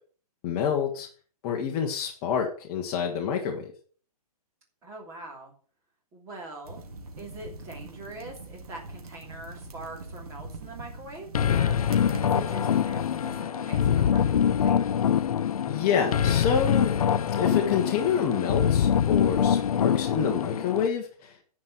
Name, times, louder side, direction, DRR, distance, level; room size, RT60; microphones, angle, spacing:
voice 1, 0.4-1.1 1.4-3.7 15.7-17.0 17.4-21.4, left 7 dB, 20° left, 0 dB, 1.2 m, -27 dB
voice 2, 4.8-5.5 6.1-6.9 7.2-11.8 12.2-15.0, right 2 dB, 15° right, 0 dB, 2.9 m, -43 dB
sound 1, 6.6-13.4, right 2 dB, 70° right, 2.7 m, -43 dB
sound 2, 11.3-20.9, left 8 dB, 70° left, 0.7 m, -24 dB
10.5 x 5.4 x 7.7 m, 0.42 s
hypercardioid pair, 170°, 20 cm